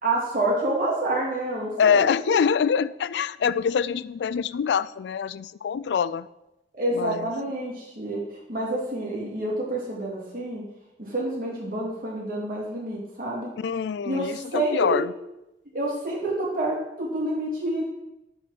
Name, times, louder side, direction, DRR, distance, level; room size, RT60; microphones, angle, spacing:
voice 1, 0.0-2.4 6.7-10.6 11.0-13.5 14.0-15.0 15.7-17.9, right 1 dB, 50° right, -5 dB, 3.1 m, -28 dB
voice 2, 1.8-6.3 6.9-7.3 13.6-15.1, left 7 dB, 75° left, 17 dB, 0.3 m, -24 dB
7.7 x 5.3 x 5.8 m, 0.92 s
head